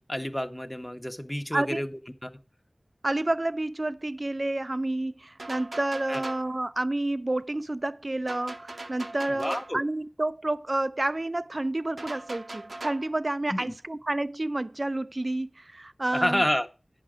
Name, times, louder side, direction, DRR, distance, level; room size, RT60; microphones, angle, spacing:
voice 1, 0.0-2.3 6.1-6.2 9.3-9.8 13.5-13.7 16.1-16.7, equal, 10° left, 0.8 m, -29 dB
voice 2, 3.0-16.4, right 2 dB, 50° right, 0.4 m, -29 dB
sound 1, 5.4-6.5 8.3-9.8 12.0-13.1, right 2 dB, 80° right, 0.8 m, -40 dB
8.8 x 5.7 x 4.9 m
wide cardioid pair, 45°, 0 cm